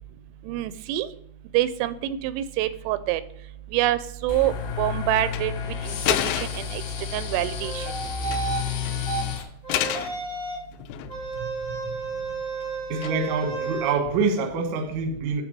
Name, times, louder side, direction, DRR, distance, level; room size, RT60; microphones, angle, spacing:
voice 1, 0.4-1.1 1.5-3.2 3.7-5.5 5.8-6.8 7.1-7.9, right 14 dB, 85° right, 2.9 m, -26 dB
sound 1, 4.3-9.4, left 7 dB, 65° left, 2.8 m, -31 dB
sound 2, 5.2-5.5 6.0-6.8 8.0-8.5 8.9-9.0 9.7-10.2 10.7-11.4 13.0-13.5, left 12 dB, 85° left, 2.5 m, -29 dB
sound 3, 7.6-8.6 9.0-9.2 9.6-10.7 11.1-13.9, right 4 dB, 35° right, 1.4 m, -32 dB
voice 2, 11.3-12.3 12.9-15.4, right 4 dB, 65° right, 1.8 m, -27 dB
9.5 x 3.3 x 6.6 m
omnidirectional pair, 5.3 m